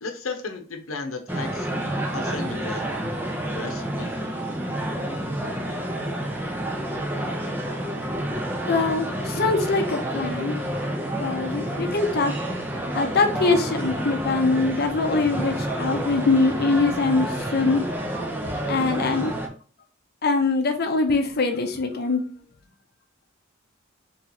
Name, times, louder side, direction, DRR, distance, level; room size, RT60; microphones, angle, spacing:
voice 1, 0.0-2.8 3.6-4.1, left 3 dB, 80° left, 0.8 m, -34 dB
sound 1, 1.3-19.5, right 1 dB, 10° right, 0.5 m, -29 dB
voice 2, 8.7-10.6 11.2-12.3 12.9-17.8 18.7-19.3 20.2-22.2, left 3 dB, 50° left, 0.6 m, -23 dB
3.1 x 3.1 x 3.8 m
head